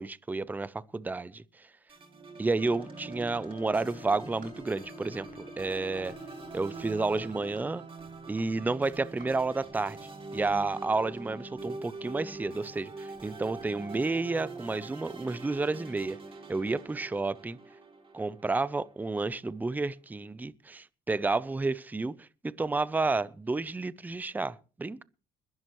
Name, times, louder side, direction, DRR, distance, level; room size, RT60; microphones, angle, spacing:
voice 1, 0.0-1.7 2.4-6.2 6.5-7.8 8.3-16.2 16.5-17.6 18.1-25.0, right 3 dB, 10° right, 0.6 m, -31 dB
sound 1, 1.9-19.3, right 3 dB, 30° right, 2.8 m, -44 dB
Bowed string instrument, 2.5-7.5, left 7 dB, 40° left, 1.4 m, -51 dB
Run, 3.2-13.8, right 4 dB, 55° right, 6.3 m, -58 dB
21.5 x 11.0 x 3.1 m
cardioid pair, 110°, 17 cm